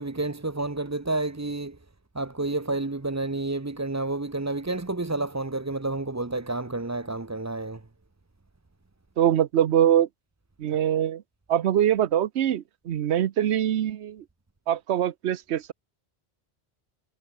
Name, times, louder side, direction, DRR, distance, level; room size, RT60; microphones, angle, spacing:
voice 1, 0.0-1.8 2.1-7.8, right 2 dB, 15° right, 0.8 m, -30 dB
voice 2, 9.2-10.1 10.6-11.2 11.5-14.2 14.7-15.7, right 10 dB, 85° right, 1.0 m, -23 dB
omnidirectional pair, 1.1 m